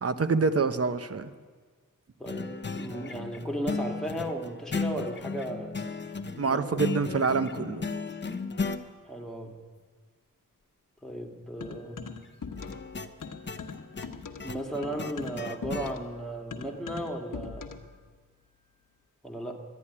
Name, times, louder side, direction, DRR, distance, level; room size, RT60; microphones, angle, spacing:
voice 1, 0.0-1.3 6.4-7.9, right 4 dB, 45° right, 11 dB, 0.9 m, -26 dB
voice 2, 2.2-5.7 6.4-6.8 9.1-9.5 11.0-12.0 14.4-17.7 19.2-19.6, equal, ahead, 1 dB, 2.0 m, -35 dB
sound 1, 2.3-8.8 12.6-15.9, left 4 dB, 35° left, 0.9 m, -35 dB
sound 2, 11.6-12.9 13.2-17.9, left 5 dB, 70° left, 1.2 m, -41 dB
11.5 x 11.0 x 9.9 m, 1.5 s
wide cardioid pair, 75°, 33 cm